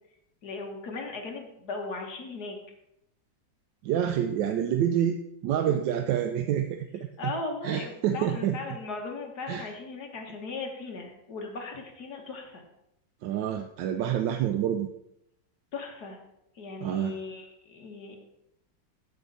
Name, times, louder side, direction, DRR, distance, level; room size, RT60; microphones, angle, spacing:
voice 1, 0.4-2.6 7.2-12.6 15.7-16.2 16.6-18.2, left 3 dB, 55° left, 1 dB, 1.9 m, -37 dB
voice 2, 3.8-7.3 7.6-8.6 9.5-9.7 13.2-14.9 16.8-17.2, right 10 dB, 75° right, 7 dB, 1.3 m, -28 dB
9.2 x 8.1 x 4.1 m, 0.84 s
omnidirectional pair, 2.0 m